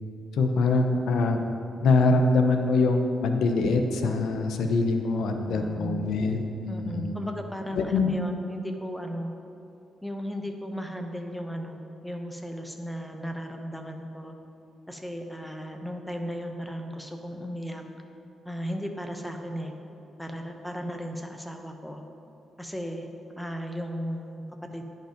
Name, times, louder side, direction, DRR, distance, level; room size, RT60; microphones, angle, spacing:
voice 1, 0.3-1.4 1.8-7.1 7.8-8.1, left 3 dB, 80° left, 5 dB, 0.7 m, -24 dB
voice 2, 5.5-6.1 6.7-9.3 10.0-14.4 14.9-17.8 18.4-19.7 20.2-22.0 22.6-23.1 23.4-24.8, equal, 5° left, 4 dB, 0.9 m, -35 dB
10.0 x 5.4 x 5.1 m, 2.8 s
cardioid pair, 75°, 0 cm